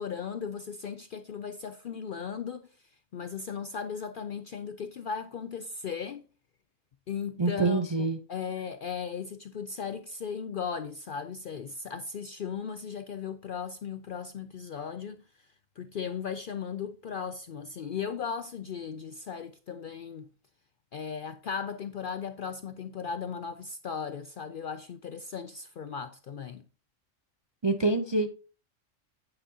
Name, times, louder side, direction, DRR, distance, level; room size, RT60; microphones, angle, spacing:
voice 1, 0.0-2.7 3.1-6.3 7.1-15.2 15.8-20.3 20.9-26.6, left 6 dB, 60° left, 0.5 m, -37 dB
voice 2, 7.4-8.2 27.6-28.3, right 3 dB, 35° right, 0.4 m, -26 dB
9.0 x 8.9 x 2.7 m
omnidirectional pair, 1.4 m